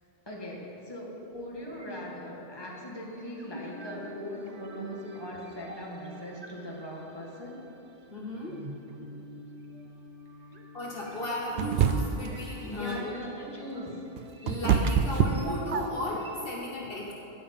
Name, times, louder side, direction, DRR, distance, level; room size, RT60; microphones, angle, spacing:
voice 1, 0.3-7.6 12.6-14.0, left 1 dB, 20° left, -3 dB, 1.8 m, -40 dB
sound 1, 1.7-16.4, right 1 dB, 35° right, 0.9 m, -45 dB
voice 2, 8.1-8.6 10.7-13.2 14.4-17.1, left 1 dB, 55° left, -3 dB, 1.4 m, -35 dB
sound 2, 11.6-12.3 13.9-16.2, right 7 dB, 65° right, 0.8 m, -25 dB
13.0 x 5.7 x 8.9 m, 3.0 s
omnidirectional pair, 1.2 m